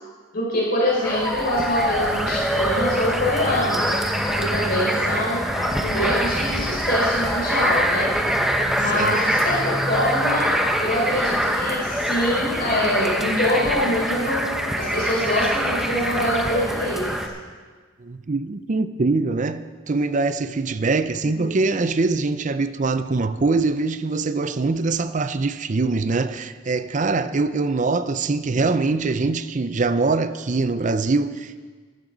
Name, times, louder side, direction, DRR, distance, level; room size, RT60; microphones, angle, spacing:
voice 1, 0.3-3.9 4.4-5.4 5.8-8.1 8.8-10.5 10.8-14.5 14.8-17.2 21.2-21.6 28.4-28.6, left 1 dB, 55° left, 4.4 m, -24 dB
Bark, 1.0-3.1 3.8-4.5 4.9-5.1 5.5-5.8 7.2-7.5 8.0-8.1 8.5-8.9, left 1 dB, 15° left, 1.5 m, -29 dB
sound 1, 1.0-17.3, equal, ahead, 0.9 m, -24 dB
voice 2, 18.0-31.6, right 3 dB, 40° right, 0.5 m, -23 dB
14.0 x 13.0 x 4.0 m
head